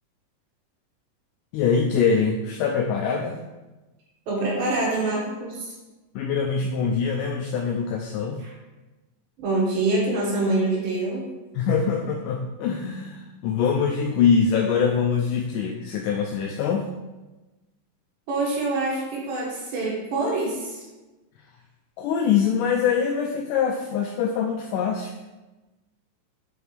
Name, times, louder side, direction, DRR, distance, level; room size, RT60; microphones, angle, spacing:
voice 1, 1.5-3.4 6.2-8.4 11.6-16.9 22.0-25.1, left 6 dB, 80° left, 1 dB, 2.0 m, -23 dB
voice 2, 4.3-5.7 8.4-8.5 9.4-11.2 18.3-20.8, right 2 dB, 85° right, -4 dB, 3.2 m, -25 dB
6.2 x 4.8 x 3.3 m, 1.1 s
omnidirectional pair, 3.9 m